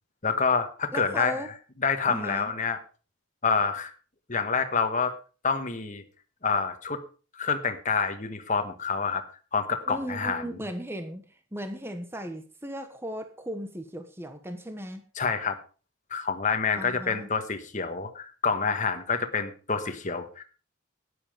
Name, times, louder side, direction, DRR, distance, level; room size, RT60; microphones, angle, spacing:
voice 1, 0.2-1.4 1.8-2.8 3.4-3.9 4.3-5.1 5.4-6.0 6.4-7.0 7.3-9.2 9.5-10.4 15.2-15.6 16.1-20.4, left 5 dB, 35° left, 7 dB, 1.4 m, -27 dB
voice 2, 0.9-1.5 2.1-2.5 9.9-15.0 16.8-17.3, equal, 10° right, 8 dB, 1.2 m, -37 dB
12.5 x 10.0 x 5.0 m, 0.36 s
head